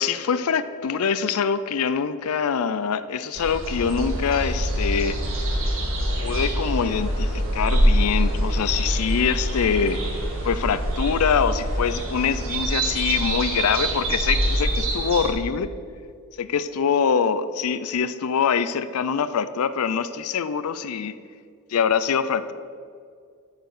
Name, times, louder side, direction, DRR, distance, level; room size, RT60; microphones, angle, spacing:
voice 1, 0.0-5.2 6.2-10.0 10.4-15.7 16.4-21.1 21.7-22.5, left 6 dB, 85° left, 14 dB, 0.4 m, -24 dB
sound 1, 3.4-15.3, right 1 dB, 65° right, 1.6 m, -25 dB
6.9 x 6.7 x 7.8 m, 2.2 s
head